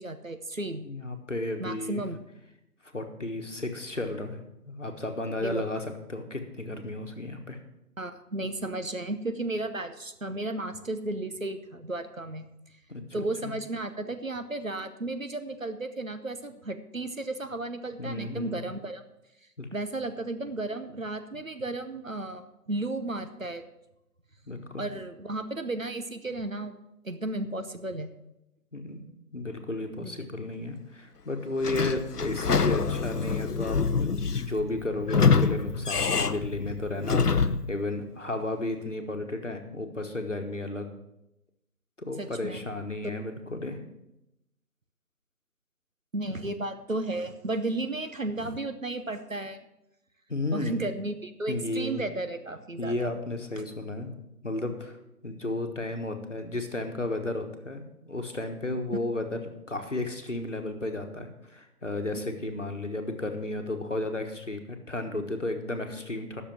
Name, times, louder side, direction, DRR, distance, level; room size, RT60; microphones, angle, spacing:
voice 1, 0.0-0.9 1.6-2.2 5.4-5.6 8.0-12.5 13.1-19.0 19.7-23.6 24.8-26.8 27.0-28.1 30.0-30.1 42.2-42.6 46.1-49.6 50.5-53.1 62.1-62.2, right 2 dB, 55° right, 9 dB, 1.0 m, -34 dB
voice 2, 0.8-2.0 2.8-4.4 4.6-7.6 12.9-13.5 18.0-18.7 19.6-19.7 24.5-24.8 28.7-29.0 29.3-40.9 42.0-43.8 50.3-50.8 51.5-52.0 52.8-54.1 54.4-55.0 55.2-59.4 59.7-66.4, left 2 dB, 50° left, 5 dB, 1.3 m, -33 dB
Sliding door / Squeak, 31.6-37.7, left 5 dB, 75° left, 0.7 m, -26 dB
10.5 x 6.7 x 7.3 m, 0.88 s
figure-of-eight pair, 170°, 47 cm